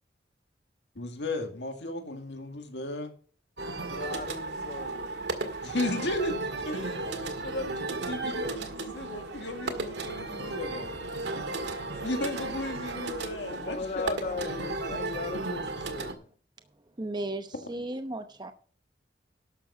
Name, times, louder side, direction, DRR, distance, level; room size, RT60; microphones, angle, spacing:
voice 1, 1.0-3.1 5.6-10.9 12.0-15.1 17.7-17.8, left 2 dB, 75° left, 2.0 m, -35 dB
sound 1, 3.6-16.1, right 3 dB, 75° right, 1.9 m, -35 dB
voice 2, 3.8-5.2 13.3-16.3, left 4 dB, 40° left, 0.5 m, -38 dB
voice 3, 17.0-18.5, right 1 dB, 25° right, 0.8 m, -35 dB
12.0 x 6.8 x 5.6 m
head